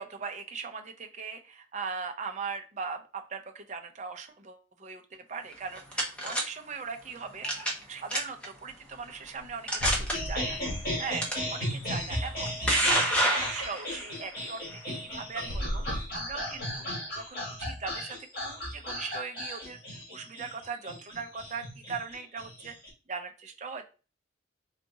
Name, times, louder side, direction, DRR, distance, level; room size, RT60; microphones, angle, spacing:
voice 1, 0.0-5.0 5.3-10.6 11.0-12.6 12.9-15.8 16.1-16.9 17.1-18.2 18.4-22.8 23.1-23.8, right 5 dB, 35° right, 5 dB, 0.5 m, -39 dB
sound 1, 5.5-6.4 7.4-7.8 8.1-8.5 9.1-9.2 9.7-10.1 11.2-11.3 12.3-14.0, right 1 dB, 5° left, 0.8 m, -26 dB
sound 2, 9.4-9.5 9.8-11.1 11.4-12.5 15.3-16.9, equal, 80° left, 1.7 m, -36 dB
sound 3, 10.1-22.9, left 1 dB, 45° left, 1.7 m, -36 dB
3.9 x 2.4 x 3.7 m, 0.34 s
head